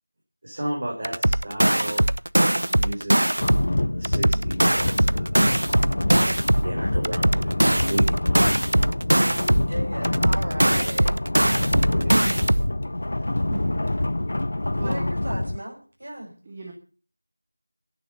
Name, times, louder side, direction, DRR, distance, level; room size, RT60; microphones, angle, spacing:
voice 1, 0.4-2.0 2.4-3.2 3.7-5.4 6.6-8.2 11.4-12.2, right 1 dB, 30° right, -2 dB, 4.3 m, -33 dB
sound 1, 1.0-3.7 4.0-6.7 7.0-9.7 10.0-12.7, right 1 dB, 80° right, 0.7 m, -21 dB
sound 2, 3.4-15.6, left 1 dB, 45° left, 0.6 m, -26 dB
voice 2, 9.4-11.7 13.2-13.3 14.6-16.3, right 1 dB, 50° right, 0 dB, 5.9 m, -36 dB
voice 3, 13.5-13.9 14.7-15.1 16.4-16.7, right 2 dB, 15° right, 2 dB, 1.3 m, -36 dB
14.0 x 11.0 x 6.7 m, 0.41 s
figure-of-eight pair, 175°, 0 cm